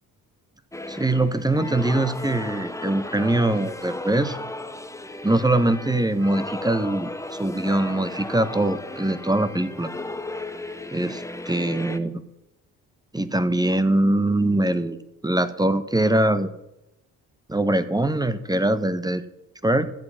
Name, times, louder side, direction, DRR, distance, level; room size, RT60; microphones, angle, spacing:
sound 1, 0.7-12.0, left 2 dB, 10° left, 0.9 m, -35 dB
voice 1, 0.9-4.4 5.2-7.1 7.4-9.9 10.9-12.1 13.1-16.5 17.5-19.2 19.6-19.9, right 1 dB, 10° right, 12 dB, 1.2 m, -22 dB
13.5 x 7.8 x 5.7 m, 0.88 s
hypercardioid pair, 55°, 40 cm